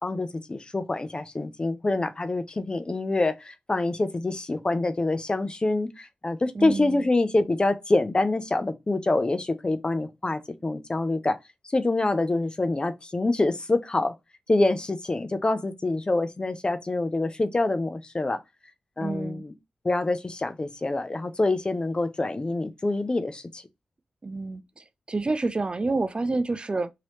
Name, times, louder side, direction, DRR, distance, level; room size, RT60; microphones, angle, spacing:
voice 1, 0.0-11.4 11.6-14.1 14.5-18.4 19.0-19.5 19.8-23.6, left 2 dB, 30° left, 0.5 m, -26 dB
voice 2, 6.5-7.1 19.0-19.4 24.2-26.9, right 3 dB, 35° right, 0.4 m, -29 dB
3.0 x 2.8 x 3.0 m
cardioid pair, 50°, 3 cm